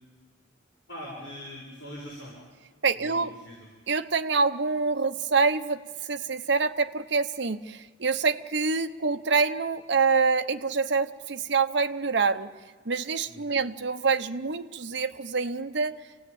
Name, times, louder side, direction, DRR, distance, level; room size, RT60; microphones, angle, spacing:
voice 1, 0.9-2.3 3.0-3.6 13.3-13.6, equal, 70° left, -6 dB, 7.3 m, -42 dB
voice 2, 2.8-3.3 3.9-5.8 6.1-12.5 12.9-16.0, right 4 dB, 60° right, 9 dB, 0.9 m, -26 dB
27.5 x 18.0 x 8.8 m, 1.5 s
head